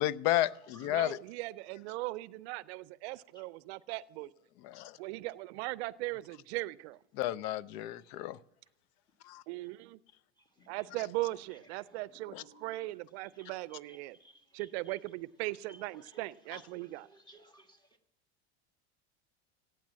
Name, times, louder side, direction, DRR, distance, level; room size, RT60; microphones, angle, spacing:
voice 1, 0.0-1.2 4.6-5.0 7.1-8.4 9.3-9.4 12.3-12.4, left 14 dB, 65° left, 0.6 m, -32 dB
voice 2, 0.9-4.3 5.0-7.0 9.5-10.0 10.7-14.2 14.5-17.1, right 19 dB, 70° right, 0.5 m, -39 dB
voice 3, 12.3-12.7 13.4-13.5 14.2-14.9 16.1-16.2 16.5-17.8, right 1 dB, 15° left, 1.6 m, -58 dB
16.0 x 9.3 x 7.4 m
supercardioid pair, 130°, 34 cm